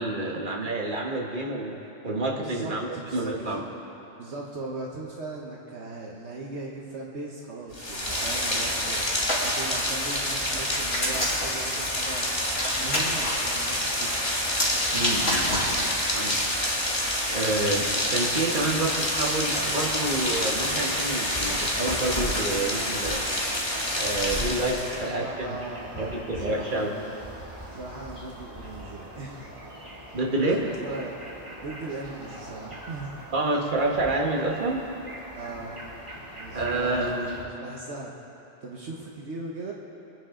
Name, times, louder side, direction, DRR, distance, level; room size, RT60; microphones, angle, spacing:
voice 1, 0.0-3.6 14.9-16.4 17.3-23.3 24.0-25.6 26.0-26.9 30.1-30.7 33.3-34.8 36.5-37.4, right 2 dB, 45° right, -1 dB, 1.7 m, -28 dB
voice 2, 2.4-3.5 4.2-9.1 9.4-12.3 12.7-14.2 24.9-27.3 27.7-29.7 30.4-31.2 31.6-33.1 35.3-35.8 36.1-37.1 37.4-38.2 38.6-39.7, right 2 dB, 65° right, -3 dB, 1.4 m, -38 dB
Rain, 7.7-25.1, left 1 dB, 25° left, 1.6 m, -28 dB
Hands, 9.1-9.5 10.2-11.5 12.5-13.3 14.4-16.4, left 1 dB, 90° left, 3.2 m, -29 dB
sound 1, 19.7-37.4, right 1 dB, 25° right, 2.5 m, -43 dB
24.5 x 10.0 x 3.8 m, 3.0 s
omnidirectional pair, 1.2 m